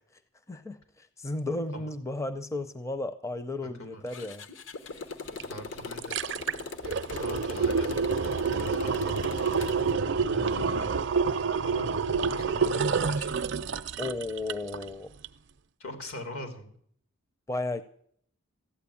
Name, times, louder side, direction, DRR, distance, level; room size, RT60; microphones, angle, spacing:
voice 1, 0.5-4.4 14.0-15.1 17.5-17.8, left 2 dB, 15° left, 11 dB, 0.5 m, -34 dB
voice 2, 3.6-4.0 5.4-6.2 7.2-9.9 10.3-10.9 11.6-12.0 12.3-13.3 15.8-16.7, left 1 dB, 85° left, 5 dB, 3.2 m, -42 dB
Motorcycle, 4.1-9.9, left 3 dB, 60° left, 0.9 m, -39 dB
sound 1, 5.4-5.5 5.8-14.9 15.2-15.3, right 5 dB, 55° right, 0.5 m, -28 dB
14.5 x 9.1 x 8.5 m, 0.62 s
head